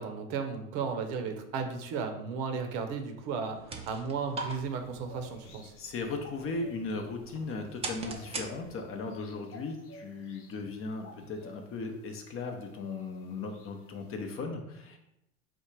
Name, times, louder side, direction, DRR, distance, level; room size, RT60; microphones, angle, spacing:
voice 1, 0.0-5.7, right 5 dB, 55° right, 6 dB, 0.8 m, -35 dB
sound 1, 3.4-9.1, right 3 dB, 15° right, 0.4 m, -43 dB
sound 2, 4.5-14.4, left 2 dB, 80° left, 1.0 m, -54 dB
voice 2, 5.7-15.0, left 3 dB, 30° left, 4 dB, 0.6 m, -37 dB
4.3 x 2.4 x 4.5 m, 0.83 s
hypercardioid pair, 95°, 45 cm